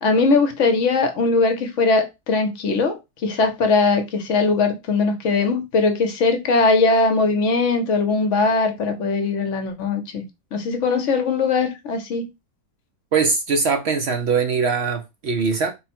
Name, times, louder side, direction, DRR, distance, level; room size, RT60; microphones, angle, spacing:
voice 1, 0.0-10.2 10.5-12.3, left 3 dB, 65° left, 1.0 m, -20 dB
voice 2, 13.1-15.7, right 5 dB, 60° right, 0.7 m, -21 dB
3.7 x 2.1 x 4.2 m
omnidirectional pair, 1.5 m